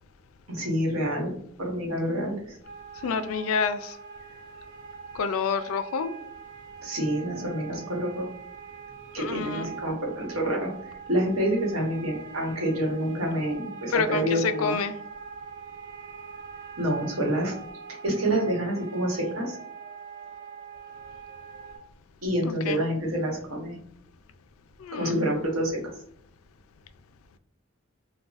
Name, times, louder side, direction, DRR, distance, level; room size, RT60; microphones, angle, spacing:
voice 1, 0.5-1.3 1.6-2.6 6.8-8.3 9.1-14.7 16.8-17.6 18.0-19.6 22.2-23.8 24.9-26.0, right 1 dB, 85° right, 1.1 m, -28 dB
sound 1, 2.6-21.8, right 6 dB, 65° right, 1.0 m, -43 dB
voice 2, 3.0-4.0 5.1-6.1 9.2-9.7 13.9-14.9 22.4-22.8 24.8-25.3, left 5 dB, 80° left, 0.3 m, -28 dB
3.8 x 2.2 x 2.4 m
head